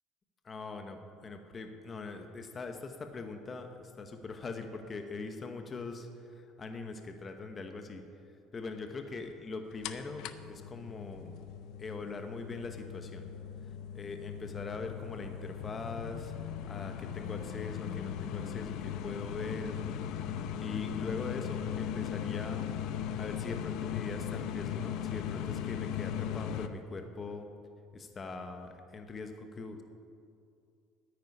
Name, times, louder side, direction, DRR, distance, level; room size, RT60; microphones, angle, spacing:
voice 1, 0.4-8.0 8.5-11.3 11.8-13.3 13.9-16.3 16.7-19.8 20.6-22.7 23.2-27.5 27.9-29.8, left 3 dB, 25° left, 6 dB, 1.0 m, -42 dB
sound 1, 9.8-26.7, left 9 dB, 65° left, 0.7 m, -38 dB
9.6 x 8.9 x 9.8 m, 2.4 s
cardioid pair, 130°, 0 cm